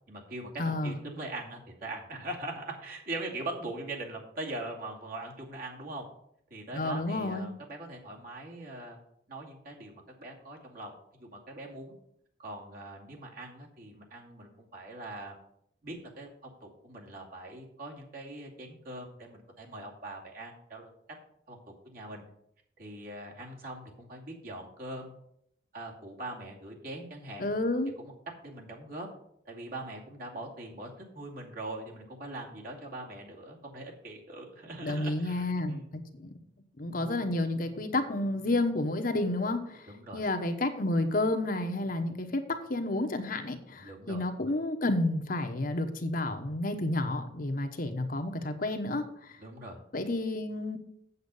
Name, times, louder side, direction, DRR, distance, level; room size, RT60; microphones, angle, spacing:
voice 1, 0.1-6.1 6.5-9.0 9.3-9.9 10.2-10.9 11.2-11.9 12.4-15.3 15.8-20.9 21.5-21.6 21.8-22.2 22.8-25.1 25.7-27.5 28.4-29.1 29.5-35.9 39.9-40.2 43.8-44.5 49.4-49.8, right 2 dB, 55° right, -2 dB, 2.5 m, -41 dB
voice 2, 0.6-1.0 6.7-7.5 27.4-27.9 34.8-36.3 36.8-39.9 40.1-49.4 49.9-50.8, left 2 dB, 50° left, 6 dB, 1.1 m, -30 dB
8.1 x 7.8 x 5.5 m, 0.73 s
head